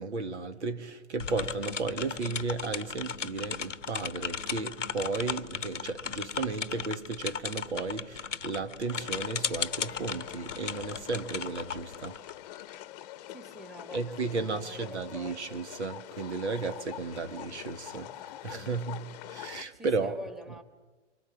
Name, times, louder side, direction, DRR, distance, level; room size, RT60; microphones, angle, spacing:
voice 1, 0.0-12.2 13.9-18.1 18.4-20.1, right 4 dB, 65° right, 1.9 m, -34 dB
sound 1, 1.2-12.7, left 6 dB, 90° left, 0.9 m, -36 dB
sound 2, 8.9-19.6, left 13 dB, 35° left, 1.0 m, -45 dB
voice 2, 13.3-15.6 18.5-18.9 19.7-20.6, left 2 dB, ahead, 1.7 m, -47 dB
28.0 x 24.5 x 7.3 m
figure-of-eight pair, 120°, 36 cm